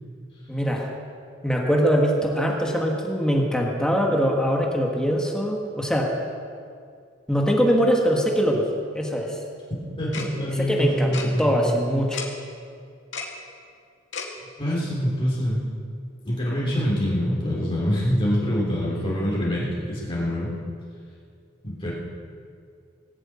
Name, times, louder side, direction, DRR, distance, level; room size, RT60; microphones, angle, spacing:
voice 1, 0.5-0.9 1.4-6.2 7.3-8.6 8.9-9.4 10.6-12.2, equal, 5° left, -1 dB, 1.5 m, -22 dB
voice 2, 10.0-12.0 14.6-15.6 16.2-20.5 21.6-21.9, equal, 30° left, -6 dB, 3.1 m, -25 dB
Tick-tock, 10.1-10.3 11.1-11.3 12.1-12.3 13.1-13.3 14.1-14.3, left 6 dB, 75° left, 2.3 m, -32 dB
19.0 x 7.9 x 8.7 m, 2.2 s
head